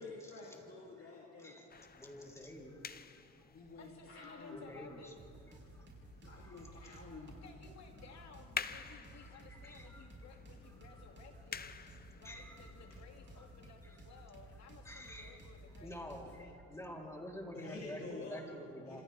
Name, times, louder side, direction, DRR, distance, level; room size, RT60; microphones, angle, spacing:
voice 1, 0.0-1.6 3.5-4.7 6.2-7.4 12.9-13.0 17.5-18.5 18.9-19.0, left 3 dB, 50° left, -3 dB, 3.0 m, -50 dB
sound 1, 1.7-15.9, left 6 dB, 30° left, 0.8 m, -51 dB
voice 2, 1.9-2.9 3.4-3.6 4.5-5.1 5.5-5.9 6.2-6.6 8.7-8.8 9.2-10.1 10.9-11.1 12.2-12.7 13.4-13.5 13.8-14.0 14.8-15.4 15.8-19.0, equal, 10° left, -1 dB, 3.8 m, -49 dB
voice 3, 3.8-5.3 7.4-11.8 12.2-16.6 17.6-17.9, left 6 dB, 65° left, 2 dB, 2.6 m, -57 dB
sound 2, 5.2-16.5, right 2 dB, 40° right, 6.2 m, -55 dB
28.5 x 26.5 x 3.6 m, 2.5 s
cardioid pair, 90°, 30 cm